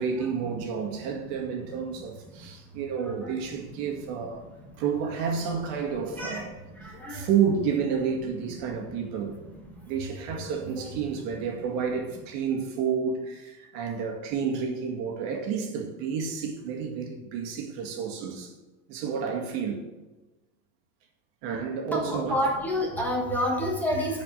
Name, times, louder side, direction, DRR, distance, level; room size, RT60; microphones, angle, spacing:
voice 1, 0.0-4.5 4.8-6.5 6.8-9.4 9.9-18.5 18.9-19.8 21.4-22.4, right 6 dB, 55° right, 2.0 m, -30 dB
voice 2, 6.1-6.4 6.8-7.2 10.3-10.4 21.9-24.2, equal, 5° left, 1.5 m, -28 dB
10.0 x 5.1 x 7.9 m
supercardioid pair, 165°, 41 cm